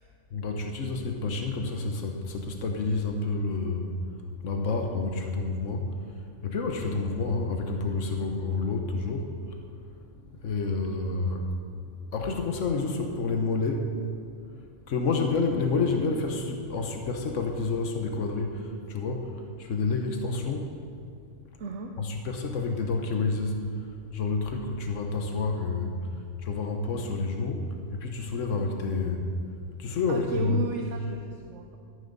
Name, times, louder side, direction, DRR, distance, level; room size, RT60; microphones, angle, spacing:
voice 1, 0.3-4.1 4.4-9.5 10.3-11.5 12.0-14.0 14.5-14.6 14.9-20.8 22.0-26.1 26.4-29.3 29.8-30.7, left 3 dB, 90° left, 3 dB, 1.4 m, -29 dB
voice 2, 21.6-21.9 30.1-31.8, right 5 dB, 75° right, 3 dB, 1.1 m, -35 dB
13.0 x 12.0 x 4.0 m, 2.3 s
omnidirectional pair, 1.3 m